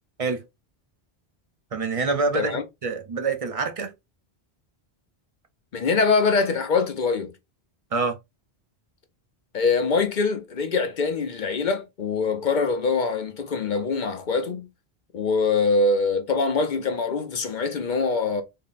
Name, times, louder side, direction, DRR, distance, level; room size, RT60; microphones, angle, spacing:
voice 1, 1.7-3.9 7.9-8.2, right 4 dB, 40° right, 0.7 m, -26 dB
voice 2, 5.7-7.3 9.5-14.7 15.1-18.4, left 4 dB, 55° left, 0.7 m, -23 dB
3.7 x 2.2 x 3.9 m
omnidirectional pair, 1.1 m